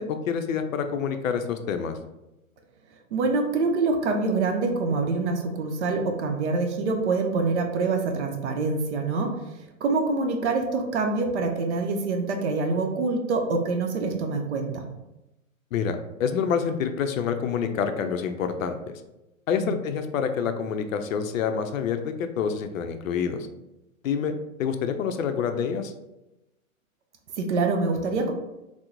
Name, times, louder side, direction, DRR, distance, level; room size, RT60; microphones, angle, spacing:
voice 1, 0.0-2.0 15.7-19.0 19.5-23.5 24.0-25.9, left 7 dB, 70° left, 8 dB, 0.5 m, -27 dB
voice 2, 3.1-9.4 9.8-14.8 19.6-19.7 27.4-28.3, right 3 dB, 55° right, 4 dB, 0.6 m, -25 dB
3.0 x 2.0 x 3.6 m, 0.95 s
hypercardioid pair, 140°, 42 cm